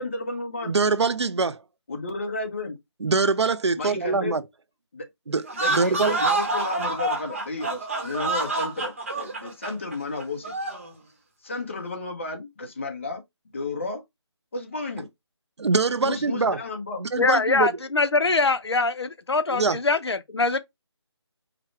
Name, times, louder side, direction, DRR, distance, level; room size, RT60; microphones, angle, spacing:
voice 1, 0.0-0.8 1.9-2.8 3.8-4.4 4.9-5.1 5.5-10.5 11.4-14.0 14.5-15.1 16.0-17.0, left 2 dB, 25° left, 0.8 m, -32 dB
voice 2, 0.6-1.6 3.0-4.4 5.3-6.2 15.6-16.6 17.0-17.7 19.5-19.8, right 4 dB, 70° right, 0.6 m, -23 dB
sound 1, 5.4-10.9, right 2 dB, 25° right, 1.0 m, -27 dB
voice 3, 17.2-20.6, left 3 dB, 65° left, 0.7 m, -23 dB
5.0 x 2.2 x 4.4 m
figure-of-eight pair, 170°, 15 cm